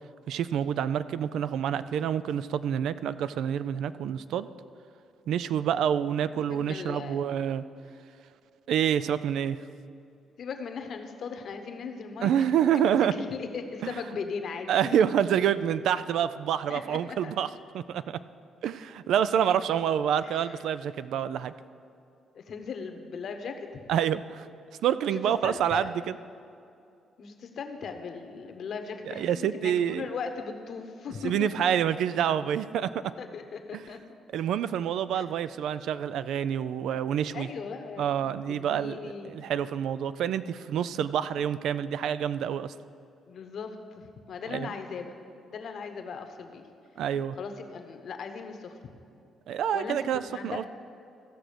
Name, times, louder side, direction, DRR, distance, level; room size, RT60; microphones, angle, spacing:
voice 1, 0.3-4.5 5.3-7.6 8.7-9.6 12.2-13.1 13.8-13.9 14.7-17.5 17.7-18.2 18.6-21.5 23.9-24.5 24.8-25.9 29.1-30.1 31.2-32.9 33.7-33.8 34.3-37.5 38.0-42.7 44.5-44.7 47.0-47.4 49.5-50.6, right 9 dB, 80° right, 14 dB, 0.3 m, -27 dB
voice 2, 6.4-7.2 10.4-12.4 12.7-15.0 16.7-17.3 19.5-19.6 20.2-20.6 22.3-23.7 25.1-25.9 27.2-31.7 33.2-34.0 35.1-35.2 37.3-39.5 41.4-41.5 43.3-45.1 45.5-46.7 47.4-48.8 49.7-50.7, left 5 dB, 60° left, 6 dB, 1.0 m, -38 dB
15.0 x 6.1 x 5.1 m, 2.5 s
cardioid pair, 90°, 0 cm